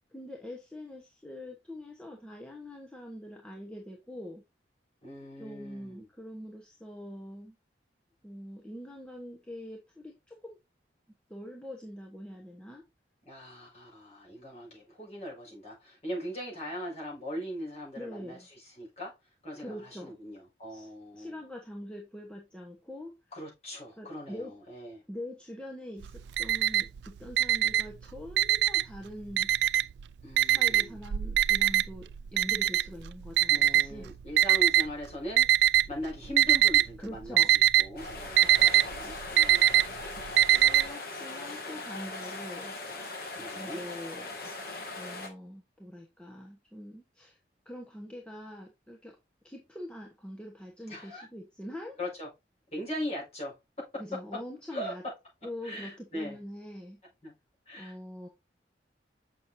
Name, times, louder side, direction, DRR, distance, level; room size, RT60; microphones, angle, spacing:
voice 1, 0.1-4.4 5.4-7.6 8.2-10.6 11.3-12.8 18.0-18.5 19.6-20.2 20.7-23.2 24.0-24.5 25.1-29.5 30.4-34.1 37.0-37.6 38.5-38.8 40.5-42.7 43.6-44.3 44.9-47.4 47.6-49.1 49.4-52.0 54.0-55.0 55.4-57.0 57.8-58.3, left 1 dB, 5° left, 1.0 m, -44 dB
voice 2, 5.0-6.1 13.2-19.1 19.4-21.4 23.3-25.0 30.2-31.0 33.5-39.7 43.3-43.8 50.9-51.2 52.0-52.3 52.7-54.2 54.7-54.9 55.6-56.4 57.2-57.3 57.7-57.9, equal, 35° left, 5.0 m, -40 dB
Alarm, 26.0-27.0 27.3-29.0 29.4-30.0 30.4-34.8 35.4-36.0 36.3-36.9 37.2-40.8, right 12 dB, 70° right, 0.3 m, -22 dB
sound 1, 38.0-45.3, left 2 dB, 55° left, 1.8 m, -40 dB
7.2 x 6.0 x 2.6 m
head